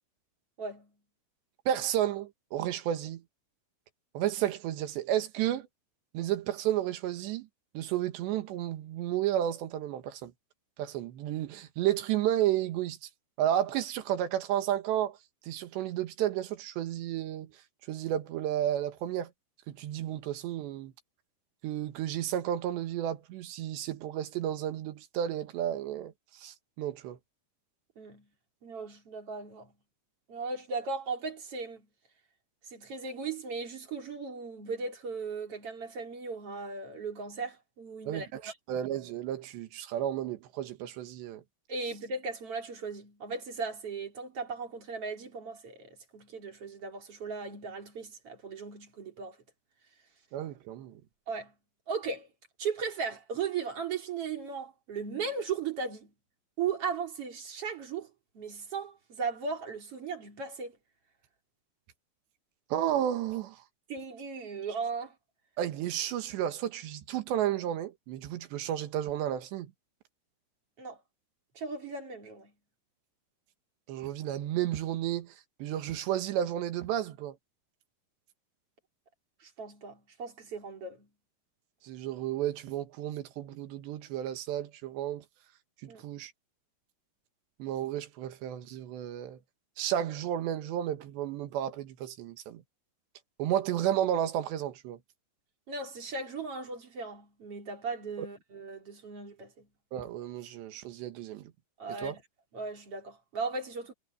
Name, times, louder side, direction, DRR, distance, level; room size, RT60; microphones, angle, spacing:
voice 1, 0.6-0.9 28.0-28.3 28.6-29.7 30.3-31.9 32.7-38.5 41.7-49.4 51.3-51.5 51.9-52.3 52.6-56.1 56.6-58.1 58.3-60.7 63.9-65.1 70.8-71.0 71.6-72.5 79.4-81.1 85.9-86.0 95.7-99.7 101.8-102.2 102.5-103.9, right 5 dB, 35° right, 3.8 m, -37 dB
voice 2, 1.7-3.2 4.2-5.7 6.1-7.5 7.8-10.3 10.8-13.1 13.4-15.2 15.5-17.6 17.9-19.3 19.7-20.9 21.6-27.2 38.1-41.4 50.3-51.0 62.7-63.6 65.6-69.7 73.9-75.4 75.6-77.4 81.8-85.2 85.8-86.3 87.6-89.4 89.8-92.6 93.4-95.0 99.9-101.5 102.0-102.2, right 11 dB, 85° right, 3.7 m, -32 dB
omnidirectional pair, 4.9 m